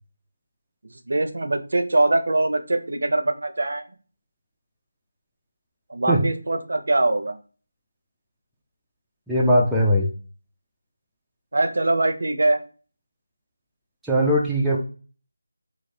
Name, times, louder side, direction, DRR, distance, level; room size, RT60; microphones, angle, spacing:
voice 1, 1.1-3.8 5.9-7.3 11.5-12.6, right 2 dB, 60° right, 8 dB, 0.6 m, -22 dB
voice 2, 9.3-10.1 14.0-14.8, equal, ahead, -7 dB, 0.3 m, -19 dB
3.1 x 2.3 x 4.2 m, 0.37 s
figure-of-eight pair, 175°, 0 cm